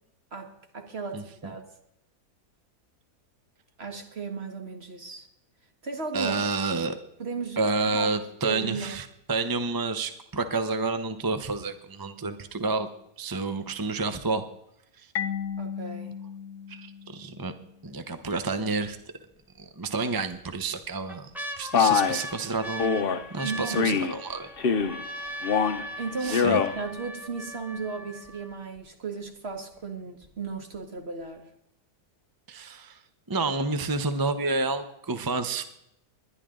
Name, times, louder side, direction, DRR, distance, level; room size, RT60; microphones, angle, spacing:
voice 1, 0.3-1.6 3.8-5.3 5.8-6.4 7.2-8.2 8.4-9.0 15.6-16.2 23.4-24.1 26.0-31.5, right 4 dB, 40° right, 5 dB, 1.8 m, -35 dB
voice 2, 6.1-7.0 7.6-12.9 13.2-14.4 15.0-15.1 16.7-17.5 17.8-19.0 19.8-21.3 21.6-23.0 23.3-24.5 25.0-25.2 26.2-26.6 32.5-33.0 33.3-35.6, right 3 dB, 20° right, 9 dB, 0.5 m, -29 dB
Marimba xylophone, 15.2-17.8, left 8 dB, 80° left, 1.3 m, -35 dB
sound 1, 17.9-18.4 18.8-18.9 19.9-20.4 20.8-28.8 29.5-29.6 29.8-30.3 30.7-30.8, equal, ahead, 1.1 m, -40 dB
Male speech man speaking, 21.7-22.2 22.8-23.2 23.8-24.1 24.6-25.0 25.4-25.8 26.2-26.7, left 6 dB, 45° left, 0.8 m, -23 dB
21.0 x 11.0 x 3.8 m, 0.80 s
omnidirectional pair, 1.7 m